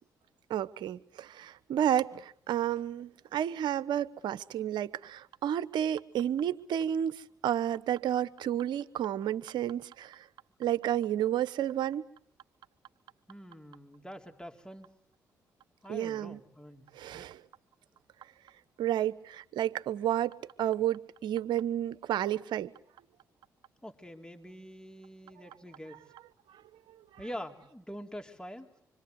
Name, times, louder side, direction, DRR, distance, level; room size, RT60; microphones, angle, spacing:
voice 1, 0.5-10.2 10.6-12.0 15.9-16.4 16.9-17.4 18.8-22.7, right 11 dB, 70° right, 1.0 m, -31 dB
voice 2, 13.3-14.9 15.8-16.9 17.1-17.3 23.8-26.0 27.2-28.7, equal, 10° left, 3.9 m, -45 dB
26.0 x 25.5 x 8.2 m
hypercardioid pair, 45°, 8 cm